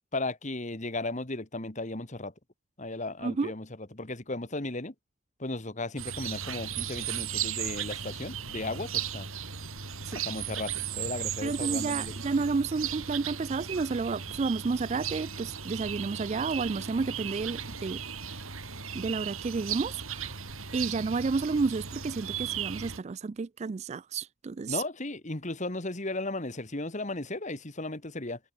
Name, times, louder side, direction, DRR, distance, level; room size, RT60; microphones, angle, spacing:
voice 1, 0.1-2.3 2.8-3.7 3.9-4.9 5.4-9.3 10.3-12.2 24.7-28.4, left 2 dB, 35° left, 1.9 m, -35 dB
voice 2, 3.2-3.5 10.1-10.2 11.4-18.0 18.3-18.4 18.9-20.4 20.7-24.8, right 4 dB, 35° right, 0.3 m, -31 dB
sound 1, 6.0-23.0, right 8 dB, 90° right, 5.8 m, -36 dB
head